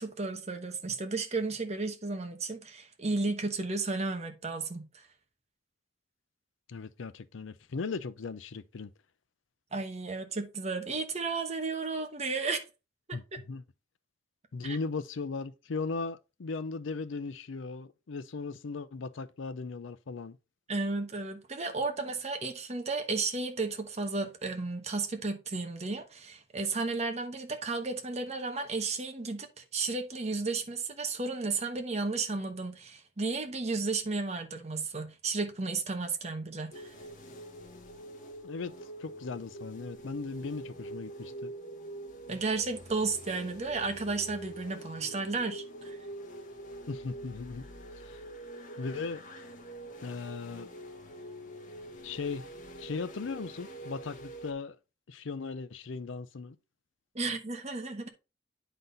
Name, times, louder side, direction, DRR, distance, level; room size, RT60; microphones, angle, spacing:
voice 1, 0.0-5.0 9.7-12.6 13.1-13.4 14.6-14.8 20.7-36.9 42.3-46.0 57.1-58.1, right 3 dB, 35° right, 1.1 m, -33 dB
voice 2, 6.7-8.9 13.1-13.6 14.5-20.4 38.4-38.7 39.0-41.5 46.9-47.7 48.0-48.2 48.8-49.2 50.0-50.7 52.0-52.4 52.8-54.8 55.1-56.6, left 4 dB, 80° left, 0.5 m, -37 dB
sound 1, 36.7-54.5, right 1 dB, 45° left, 1.2 m, -45 dB
9.1 x 4.0 x 3.9 m
head